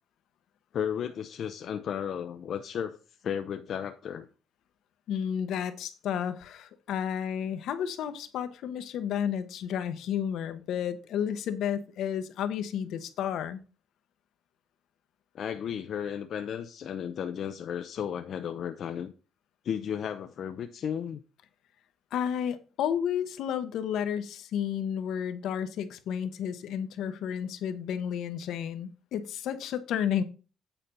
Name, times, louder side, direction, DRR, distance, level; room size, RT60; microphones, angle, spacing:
voice 1, 0.7-3.0 3.2-4.3 15.3-19.1 19.6-21.2, left 8 dB, 60° left, 0.6 m, -34 dB
voice 2, 5.1-13.6 22.1-30.2, left 9 dB, 75° left, 0.9 m, -32 dB
9.1 x 4.3 x 5.4 m
cardioid pair, 100°, 0 cm